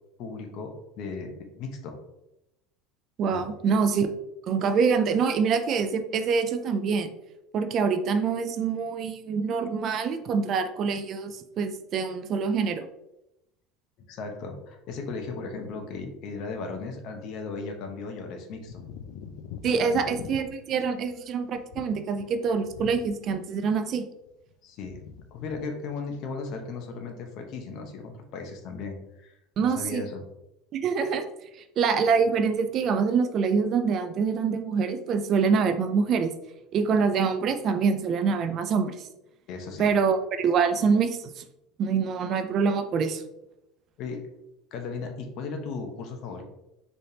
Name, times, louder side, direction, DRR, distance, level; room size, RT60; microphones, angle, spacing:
voice 1, 0.2-2.0 3.3-3.5 14.1-18.8 19.8-20.0 24.6-25.0 25.3-30.2 39.5-39.9 44.0-44.2 44.7-46.4, left 4 dB, 50° left, 4 dB, 0.8 m, -36 dB
voice 2, 3.2-4.1 4.5-7.1 7.5-12.9 19.6-24.1 29.6-30.0 30.7-31.2 31.8-36.3 36.7-39.0 39.8-41.4 41.8-43.2, right 5 dB, 40° right, 9 dB, 0.3 m, -25 dB
sound 1, 18.7-23.6 23.9-24.5 24.8-25.6 25.9-26.2, left 7 dB, 70° left, 0.3 m, -43 dB
4.1 x 3.4 x 2.7 m, 0.88 s
supercardioid pair, 140°, 0 cm